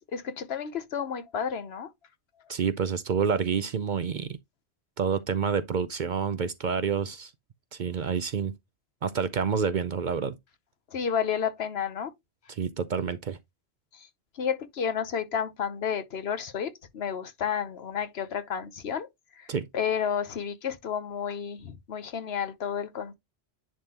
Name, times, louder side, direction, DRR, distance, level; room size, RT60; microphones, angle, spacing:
voice 1, 0.1-1.9 10.9-12.1 13.9-14.1 14.3-19.1 19.4-23.1, left 7 dB, 70° left, 1.1 m, -31 dB
voice 2, 2.5-4.4 5.0-7.3 7.7-8.5 9.0-10.4 12.6-13.4 19.5-19.7, right 6 dB, 55° right, 0.6 m, -28 dB
10.0 x 3.7 x 2.9 m
omnidirectional pair, 1.1 m